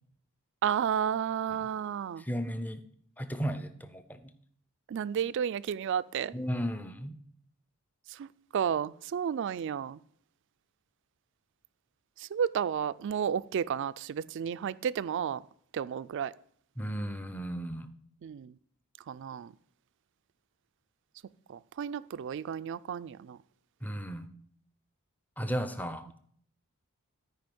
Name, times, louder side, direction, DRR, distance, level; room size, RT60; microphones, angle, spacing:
voice 1, 0.6-2.2 4.9-6.3 8.1-8.3 8.5-10.0 12.2-15.4 15.7-16.3 18.2-18.5 19.1-19.5 21.5-23.4, right 8 dB, 55° right, 0.3 m, -32 dB
voice 2, 2.2-2.8 3.2-4.3 6.3-7.2 16.8-17.9 23.8-24.3 25.4-26.1, equal, 10° left, 0.6 m, -35 dB
13.0 x 4.9 x 5.3 m
head